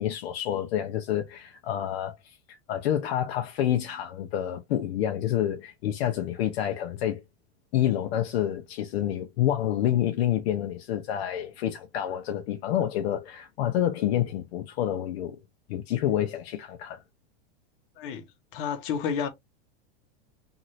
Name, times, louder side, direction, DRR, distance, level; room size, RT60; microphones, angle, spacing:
voice 1, 0.0-7.2 7.7-15.4 15.7-17.0, left 11 dB, 70° left, 0.6 m, -28 dB
voice 2, 18.0-18.3 18.5-19.3, left 7 dB, 55° left, 0.9 m, -30 dB
3.0 x 2.6 x 2.6 m
supercardioid pair, 155°, 32 cm